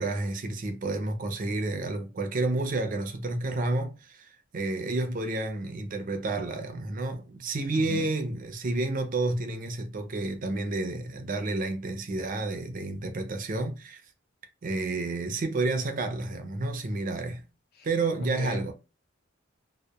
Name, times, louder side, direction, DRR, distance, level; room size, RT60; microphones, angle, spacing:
voice 1, 0.0-14.0 14.6-17.4 17.8-18.7, right 2 dB, 45° right, 0.5 m, -30 dB
voice 2, 7.7-8.1 17.7-17.9 18.2-18.7, left 4 dB, 50° left, 0.5 m, -38 dB
2.8 x 2.1 x 2.2 m
head